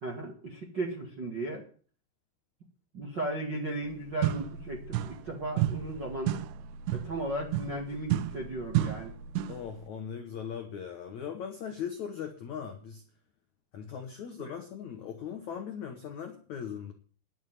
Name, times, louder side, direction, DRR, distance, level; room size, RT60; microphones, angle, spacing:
voice 1, 0.0-1.6 2.9-6.4 6.9-9.1 14.4-14.6, right 1 dB, 55° right, -1 dB, 1.2 m, -36 dB
sound 1, 3.8-3.9 4.2-5.3 5.6-9.7, right 12 dB, 80° right, 3.0 m, -32 dB
voice 2, 9.5-13.0 13.7-16.9, left 8 dB, 85° left, 4 dB, 1.6 m, -39 dB
11.0 x 7.3 x 9.3 m, 0.43 s
omnidirectional pair, 5.4 m